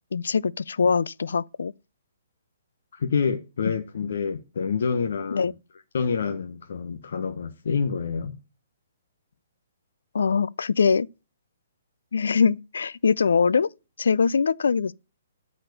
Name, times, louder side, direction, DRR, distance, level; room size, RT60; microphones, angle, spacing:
voice 1, 0.1-1.7 3.7-3.8 5.3-5.5 10.1-11.1 12.1-13.7 14.0-14.9, left 5 dB, 85° left, 0.5 m, -22 dB
voice 2, 2.9-5.5 5.9-8.4, left 6 dB, 65° left, 1.0 m, -27 dB
13.0 x 4.4 x 6.6 m
hypercardioid pair, 165°, 0 cm